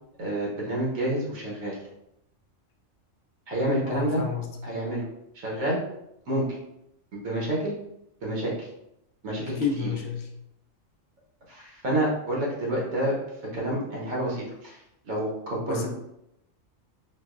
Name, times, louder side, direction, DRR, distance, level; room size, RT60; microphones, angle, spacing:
voice 1, 0.2-1.8 3.5-4.2 4.6-5.0 5.3-5.8 6.3-6.4 7.1-7.7 8.2-8.7 9.2-9.9 11.5-13.2 13.5-15.9, right 1 dB, 85° right, -4 dB, 1.5 m, -28 dB
voice 2, 3.8-4.6 9.5-10.3 15.7-15.9, left 6 dB, 70° left, 3 dB, 0.4 m, -30 dB
4.3 x 2.2 x 2.4 m, 0.82 s
omnidirectional pair, 1.4 m